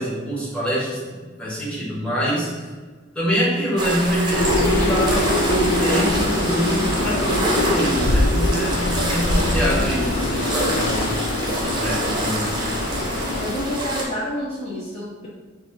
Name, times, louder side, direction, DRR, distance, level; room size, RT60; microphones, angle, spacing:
voice 1, 0.0-2.7 3.1-11.0 11.4-12.5, equal, 5° left, -7 dB, 1.4 m, -25 dB
sound 1, 3.8-14.0, right 1 dB, 25° right, 0.8 m, -26 dB
sound 2, 4.3-13.9, left 2 dB, 75° left, 0.5 m, -23 dB
voice 2, 9.1-10.1 13.4-15.3, equal, 35° left, -7 dB, 0.7 m, -30 dB
5.2 x 2.6 x 3.8 m, 1.4 s
head